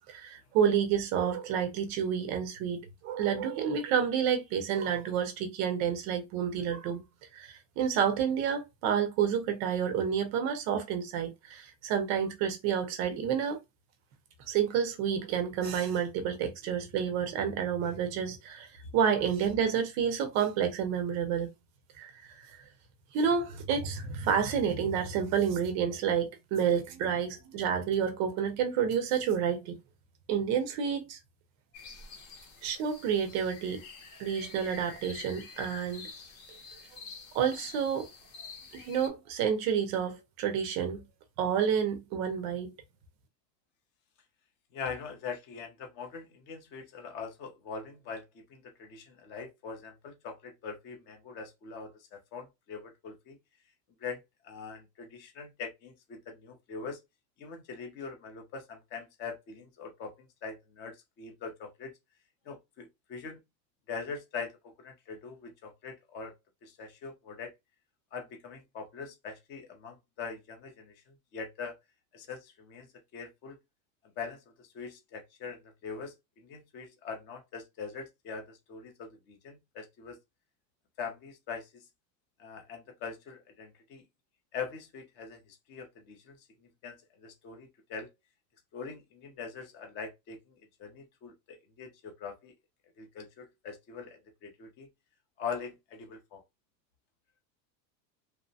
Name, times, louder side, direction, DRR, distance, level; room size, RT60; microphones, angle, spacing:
voice 1, 0.1-7.0 7.3-13.6 14.5-18.7 18.9-21.5 22.0-22.1 23.1-29.8 30.3-31.2 32.6-33.9 34.2-36.1 37.3-38.1 38.7-41.0 41.4-42.7, right 7 dB, 35° right, 0.5 m, -29 dB
sound 1, 31.7-39.1, left 4 dB, 50° left, 0.9 m, -48 dB
voice 2, 44.7-53.4 54.0-57.0 57.4-61.9 62.5-63.4 63.9-64.5 64.8-66.3 66.6-67.5 68.1-71.7 72.1-73.6 74.2-80.2 81.0-81.8 82.4-84.0 84.5-86.4 86.8-88.1 88.7-92.5 93.0-94.9 95.4-96.4, left 5 dB, 25° left, 0.4 m, -42 dB
2.9 x 2.0 x 2.6 m
supercardioid pair, 155°, 49 cm